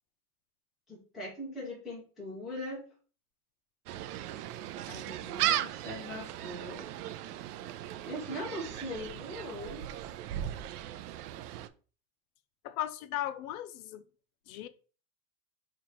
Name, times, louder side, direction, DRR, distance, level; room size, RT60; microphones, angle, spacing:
voice 1, 0.9-2.8 4.9-6.9 8.0-9.8, left 1 dB, ahead, 0.3 m, -41 dB
Gull seagull, 3.9-11.7, right 12 dB, 75° right, 0.5 m, -37 dB
voice 2, 12.6-14.0 14.5-14.7, left 13 dB, 65° left, 0.5 m, -36 dB
5.5 x 2.5 x 3.0 m
supercardioid pair, 160°, 46 cm